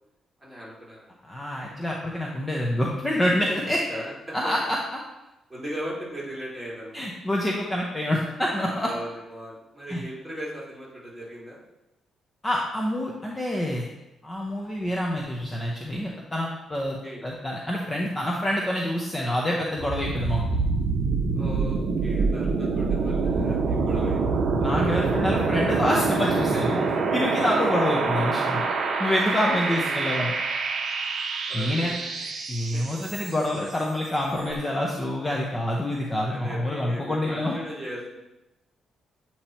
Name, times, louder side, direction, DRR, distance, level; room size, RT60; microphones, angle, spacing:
voice 1, 0.4-1.0 3.7-4.4 5.5-7.1 8.8-11.6 16.7-17.2 21.3-24.3 29.1-30.1 31.5-32.0 36.3-38.2, equal, 5° right, -6 dB, 2.3 m, -38 dB
voice 2, 1.2-3.8 4.3-4.8 6.9-8.9 9.9-10.0 12.4-13.9 14.2-20.6 24.6-26.8 27.1-28.6 29.0-30.3 31.5-31.9 32.5-37.5, left 1 dB, 20° left, -2 dB, 0.8 m, -27 dB
sound 1, 19.8-33.6, right 4 dB, 50° right, 0.7 m, -26 dB
8.4 x 3.0 x 4.3 m, 0.97 s
cardioid pair, 100°, 0 cm